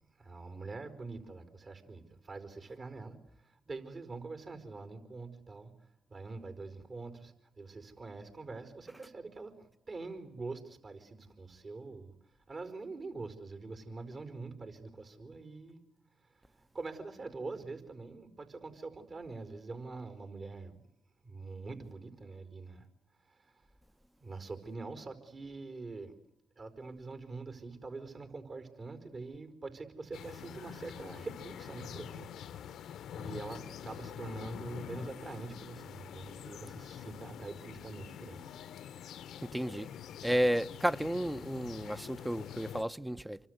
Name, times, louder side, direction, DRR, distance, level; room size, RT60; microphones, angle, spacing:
voice 1, 0.2-5.7 6.1-12.1 12.5-15.8 16.3-20.7 21.2-22.9 23.2-23.7 24.2-26.1 26.6-32.3 33.1-38.5, right 3 dB, 45° right, 5.0 m, -44 dB
sound 1, 30.1-42.8, left 9 dB, 75° left, 1.0 m, -46 dB
voice 2, 39.4-39.9 40.2-43.4, equal, 10° right, 1.0 m, -32 dB
28.5 x 24.0 x 8.2 m
supercardioid pair, 50°, 0 cm